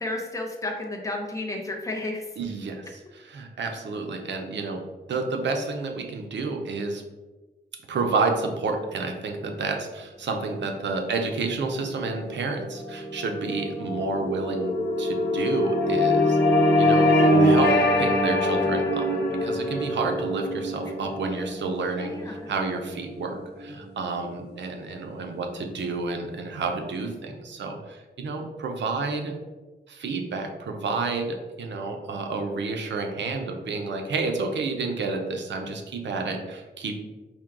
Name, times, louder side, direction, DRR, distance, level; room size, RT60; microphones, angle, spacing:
voice 1, 0.0-2.2 21.3-21.4 22.0-22.5, left 2 dB, 15° left, 1 dB, 0.6 m, -32 dB
voice 2, 2.4-4.8 5.1-7.0 7.9-16.4 16.8-17.1 17.4-29.4 29.9-37.0, right 3 dB, 80° right, 4 dB, 0.6 m, -30 dB
sound 1, 11.5-24.1, left 1 dB, 65° left, 0.7 m, -24 dB
4.4 x 2.2 x 3.5 m, 1.2 s
wide cardioid pair, 135°, 19 cm